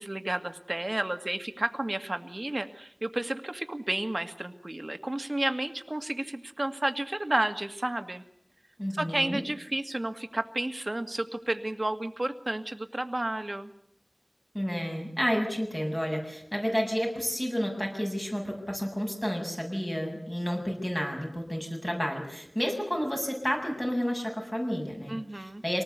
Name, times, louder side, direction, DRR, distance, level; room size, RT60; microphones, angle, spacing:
voice 1, 0.0-8.2 8.9-13.7 25.1-25.6, right 1 dB, 45° right, 8 dB, 2.1 m, -31 dB
voice 2, 8.8-9.4 14.5-25.8, equal, 20° left, 1 dB, 7.3 m, -31 dB
25.5 x 19.5 x 8.2 m, 0.73 s
wide cardioid pair, 45°, 0 cm